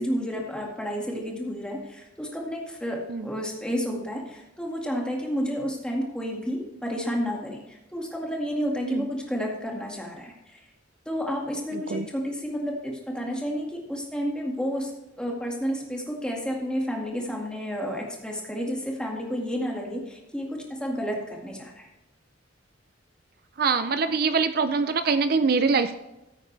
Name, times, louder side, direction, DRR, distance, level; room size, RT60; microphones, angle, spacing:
voice 1, 0.0-10.6 11.1-14.9 15.2-21.9, equal, 5° left, -1 dB, 2.0 m, -31 dB
voice 2, 11.7-12.1 23.6-26.0, right 4 dB, 50° right, 10 dB, 0.5 m, -24 dB
15.0 x 8.5 x 3.4 m, 0.96 s
head